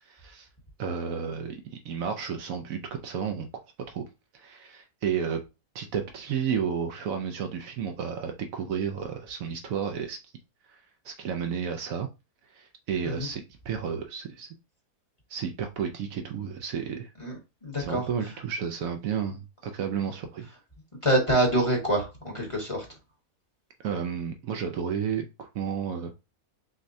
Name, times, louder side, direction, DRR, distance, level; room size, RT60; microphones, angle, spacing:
voice 1, 0.1-0.5 0.8-3.5 3.9-4.0 4.3-5.4 5.7-10.2 10.7-12.1 12.5-14.5 15.3-17.1 17.8-20.5 23.8-26.1, right 7 dB, 70° right, 6 dB, 0.9 m, -32 dB
voice 2, 17.6-18.1 21.0-22.8, right 1 dB, 25° left, -1 dB, 1.0 m, -25 dB
6.2 x 2.2 x 2.6 m, 0.27 s
omnidirectional pair, 1.6 m